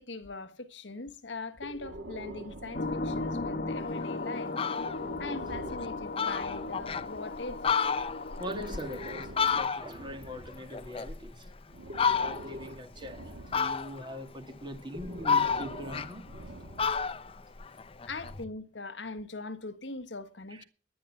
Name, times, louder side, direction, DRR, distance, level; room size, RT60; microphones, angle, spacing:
voice 1, 0.0-4.6 5.2-7.8 18.1-20.6, left 3 dB, 85° left, 1.5 m, -41 dB
Breathing, 1.6-4.0 4.8-7.1 8.2-11.1 11.7-13.9 14.8-17.1, right 1 dB, 80° right, 2.6 m, -45 dB
sound 1, 2.7-9.4, left 2 dB, 55° left, 1.2 m, -36 dB
Fowl, 3.9-4.0 4.4-5.0 5.5-5.6 5.8-5.9 6.2-7.1 7.5-10.1 10.5-11.5 11.9-12.6 13.5-14.2 14.7-16.5 16.8-18.4, left 6 dB, 30° left, 0.7 m, -30 dB
voice 2, 8.2-11.5 12.1-16.2 17.6-17.9 20.5-20.6, equal, 25° right, 2.2 m, -42 dB
11.0 x 10.5 x 8.5 m
head